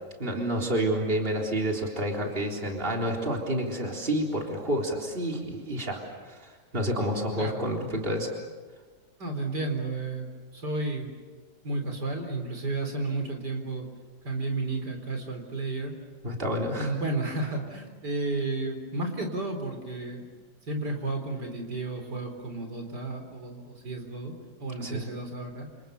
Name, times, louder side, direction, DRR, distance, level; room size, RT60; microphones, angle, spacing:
voice 1, 0.2-8.3 16.2-16.9 24.8-25.0, right 1 dB, 30° right, 0 dB, 4.0 m, -29 dB
voice 2, 9.2-10.3 10.5-11.1 11.6-13.9 14.2-15.9 16.8-20.3 20.7-24.3 24.6-25.7, right 2 dB, 75° right, 4 dB, 4.5 m, -32 dB
29.0 x 28.0 x 7.0 m, 1.3 s
omnidirectional pair, 1.8 m